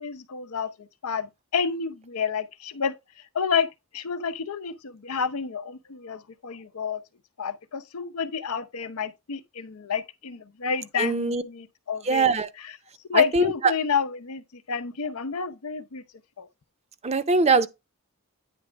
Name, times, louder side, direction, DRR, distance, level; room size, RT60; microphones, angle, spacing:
voice 1, 0.0-3.7 3.9-7.0 7.4-12.3 12.6-12.8 13.1-16.0 16.4-16.5, left 6 dB, 90° left, 0.7 m, -29 dB
voice 2, 11.0-11.4 12.1-12.5 13.1-13.5 17.0-17.7, right 3 dB, 30° right, 0.5 m, -22 dB
9.2 x 3.3 x 5.1 m
head